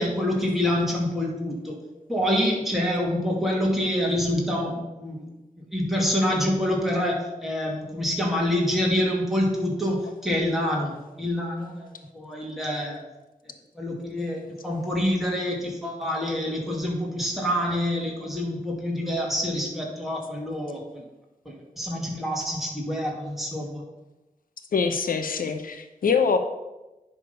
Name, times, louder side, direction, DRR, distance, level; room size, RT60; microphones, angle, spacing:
voice 1, 0.0-1.8 2.1-5.3 5.7-11.9 12.1-13.0 13.7-21.0 21.5-23.8, left 1 dB, ahead, -3 dB, 2.4 m, -26 dB
voice 2, 24.7-26.4, left 5 dB, 85° left, 7 dB, 0.8 m, -24 dB
10.0 x 3.7 x 5.7 m, 1.0 s
wide cardioid pair, 70°, 14 cm